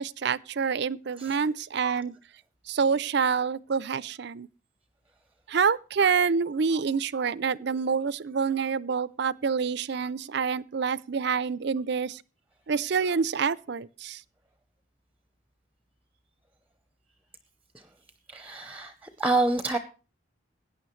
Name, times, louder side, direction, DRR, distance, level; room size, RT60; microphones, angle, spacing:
voice 1, 0.0-2.1 2.7-4.5 5.5-12.2 12.7-14.2, right 6 dB, 55° right, 0.5 m, -27 dB
voice 2, 18.3-19.8, right 2 dB, 10° right, 0.7 m, -27 dB
17.0 x 9.8 x 3.1 m
head